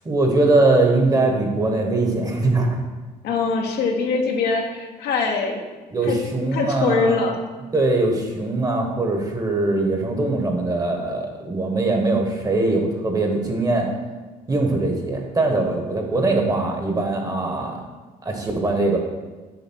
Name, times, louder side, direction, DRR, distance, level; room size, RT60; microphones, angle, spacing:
voice 1, 0.0-2.7 5.9-7.2 7.7-13.9 14.5-17.8 18.2-19.0, right 2 dB, 20° right, 2 dB, 1.2 m, -21 dB
voice 2, 3.2-5.6 6.0-6.2 6.5-7.4, left 4 dB, 75° left, 1 dB, 1.2 m, -23 dB
7.1 x 3.6 x 6.1 m, 1.3 s
cardioid pair, 110°, 17 cm